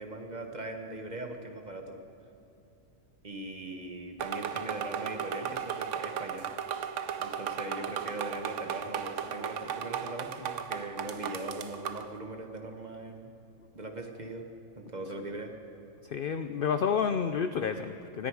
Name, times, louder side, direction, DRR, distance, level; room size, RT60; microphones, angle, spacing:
voice 1, 0.0-2.0 3.2-6.5 7.2-13.3 13.7-14.5 14.8-15.5, right 2 dB, 35° right, 3 dB, 1.3 m, -40 dB
sound 1, 4.2-12.1, right 8 dB, 65° right, 1.0 m, -36 dB
voice 2, 16.0-18.3, left 6 dB, 60° left, 9 dB, 0.5 m, -30 dB
19.5 x 13.5 x 4.8 m, 2.8 s
omnidirectional pair, 1.4 m